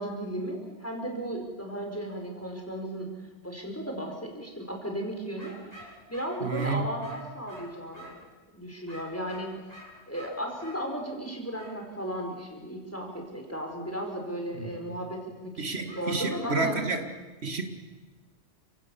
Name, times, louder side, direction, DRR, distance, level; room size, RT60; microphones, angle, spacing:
voice 1, 0.0-3.1 3.4-8.1 8.5-16.8, right 1 dB, 15° left, 1 dB, 4.4 m, -35 dB
sound 1, 5.4-8.3 8.9-10.8 11.5-11.8 15.9-16.5, equal, 35° left, 6.7 m, -48 dB
voice 2, 6.4-6.8 14.5-14.7 15.6-17.1 17.4-17.6, right 3 dB, 70° right, 6 dB, 2.1 m, -30 dB
30.0 x 17.0 x 7.0 m, 1.2 s
omnidirectional pair, 1.1 m